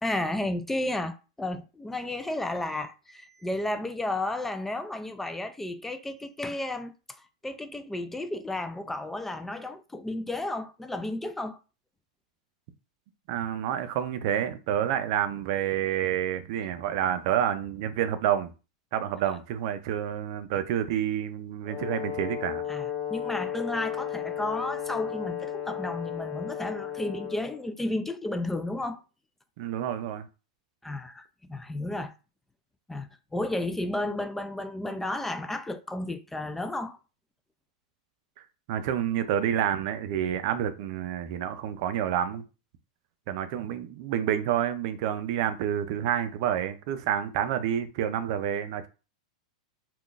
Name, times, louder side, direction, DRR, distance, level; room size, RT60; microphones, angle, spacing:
voice 1, 0.0-11.6 22.7-29.0 30.8-32.1 32.9-37.0, left 1 dB, 5° left, 0.3 m, -33 dB
voice 2, 13.3-18.5 18.9-22.6 29.6-30.3 38.7-42.4 43.3-48.9, right 10 dB, 55° right, 0.4 m, -28 dB
Brass instrument, 21.6-27.6, left 9 dB, 60° left, 1.3 m, -34 dB
3.7 x 2.3 x 2.4 m
hypercardioid pair, 110°, 3 cm